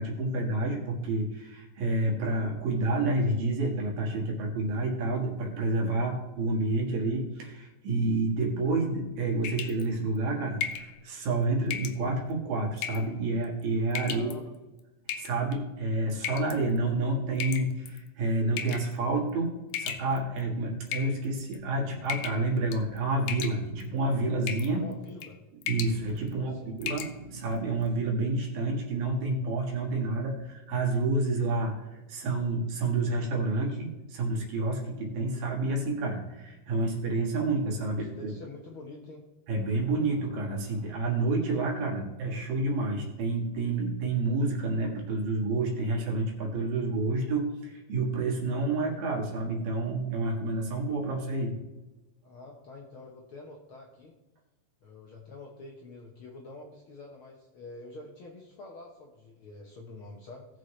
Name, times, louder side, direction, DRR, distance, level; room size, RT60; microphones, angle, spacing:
voice 1, 0.0-14.3 15.1-24.8 25.6-38.3 39.5-51.5, right 2 dB, 80° right, -1 dB, 3.5 m, -29 dB
sound 1, 9.4-9.9 10.6-10.9 11.7-12.0 12.8-13.1 13.9-14.3 15.1-15.6 16.2-16.6 17.4-18.0 18.6-18.9 19.7-20.4 20.9-21.6 22.1-22.5 22.7-23.0 23.3-23.9 24.5-24.7 25.1-25.3 25.6-26.0 26.3-26.4 26.8-27.1, left 8 dB, 85° left, 2.4 m, -35 dB
voice 2, 14.1-14.5 24.8-25.4 26.3-26.7 37.9-39.2 52.2-54.1 54.8-60.5, left 2 dB, 65° left, 0 dB, 1.3 m, -47 dB
18.5 x 6.6 x 3.2 m, 1.1 s
omnidirectional pair, 3.9 m